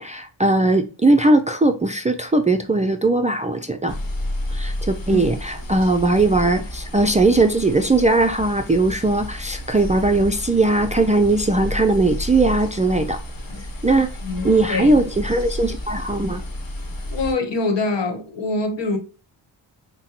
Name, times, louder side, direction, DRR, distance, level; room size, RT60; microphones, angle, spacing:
voice 1, 0.0-3.9 4.5-13.2 13.8-14.1 14.4-16.4, right 2 dB, 15° right, 0.4 m, -19 dB
sound 1, 3.9-17.3, left 1 dB, 45° left, 1.3 m, -31 dB
voice 2, 14.2-15.0 17.1-19.0, left 3 dB, 60° left, 1.2 m, -24 dB
5.5 x 2.2 x 2.8 m
cardioid pair, 55°, 48 cm